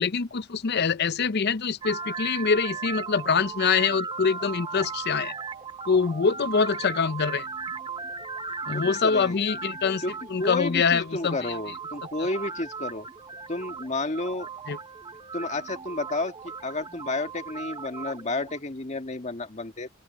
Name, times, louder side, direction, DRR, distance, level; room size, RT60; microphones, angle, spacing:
voice 1, 0.0-5.3 5.9-7.5 8.7-10.0 10.3-11.4 14.7-14.8, left 5 dB, 55° left, 0.6 m, -24 dB
sound 1, 1.8-18.6, right 5 dB, 25° right, 0.9 m, -37 dB
voice 2, 8.7-9.4 10.0-10.1 10.4-13.1 13.5-14.5 15.3-19.9, left 2 dB, 35° left, 1.7 m, -31 dB
open air
head